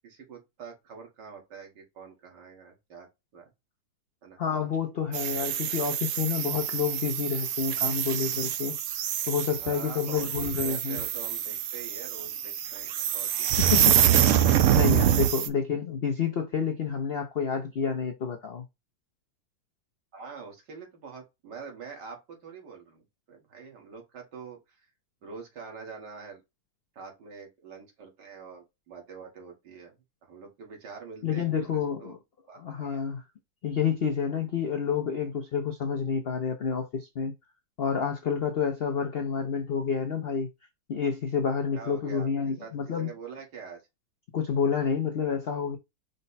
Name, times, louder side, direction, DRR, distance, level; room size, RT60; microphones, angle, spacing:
voice 1, 0.0-3.1 3.3-3.5 4.2-4.4 9.6-13.7 20.1-23.0 23.3-24.8 25.2-26.4 27.0-30.0 30.2-32.2 32.5-33.0 41.7-42.3 42.6-42.7 43.0-43.8, right 5 dB, 70° right, 2.2 m, -45 dB
voice 2, 4.4-8.7 9.3-11.0 13.6-14.3 14.7-18.6 31.2-32.2 32.5-33.2 33.6-37.3 37.8-40.5 40.9-43.1 44.3-45.8, left 6 dB, 75° left, 0.5 m, -29 dB
sound 1, 5.1-15.5, right 10 dB, 90° right, 0.6 m, -26 dB
5.2 x 2.2 x 3.9 m
omnidirectional pair, 1.9 m